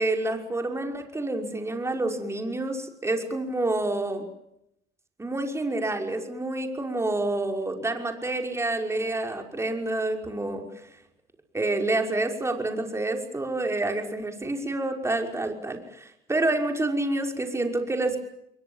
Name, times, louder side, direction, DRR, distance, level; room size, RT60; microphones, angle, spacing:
voice 1, 0.0-4.2 5.2-10.6 11.5-18.2, right 2 dB, 15° right, 3 dB, 5.7 m, -28 dB
29.0 x 22.5 x 7.4 m, 0.79 s
cardioid pair, 110°, 17 cm